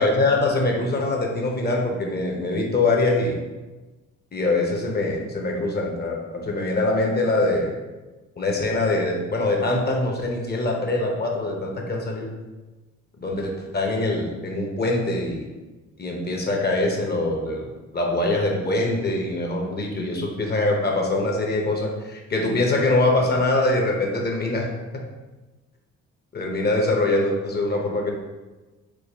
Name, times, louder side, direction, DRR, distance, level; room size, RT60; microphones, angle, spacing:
voice 1, 0.0-3.4 4.3-7.8 8.4-12.3 13.2-15.5 16.0-17.7 17.9-24.7 26.3-28.1, left 2 dB, 35° left, 1 dB, 0.7 m, -23 dB
4.7 x 2.1 x 3.3 m, 1.2 s
cardioid pair, 90°, 30 cm